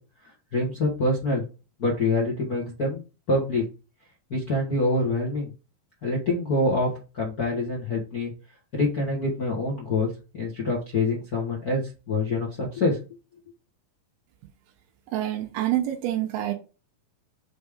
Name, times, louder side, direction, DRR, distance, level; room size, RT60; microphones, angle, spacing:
voice 1, 0.2-1.4 1.8-3.0 3.3-3.6 4.3-5.5 6.0-6.9 7.1-8.3 8.7-13.0, left 2 dB, 85° left, 0.8 m, -26 dB
voice 2, 15.1-16.5, right 13 dB, 90° right, 2.7 m, -27 dB
6.3 x 3.6 x 5.0 m
omnidirectional pair, 4.3 m